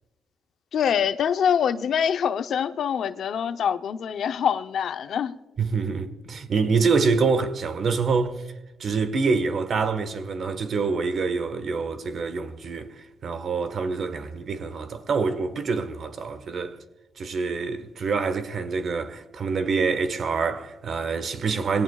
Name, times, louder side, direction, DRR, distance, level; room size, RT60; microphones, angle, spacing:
voice 1, 0.7-5.4, left 8 dB, 65° left, 0.7 m, -25 dB
voice 2, 5.6-8.4 8.8-16.8 17.2-21.8, right 4 dB, 50° right, 1.4 m, -26 dB
22.0 x 17.5 x 2.4 m
cardioid pair, 90°, 0 cm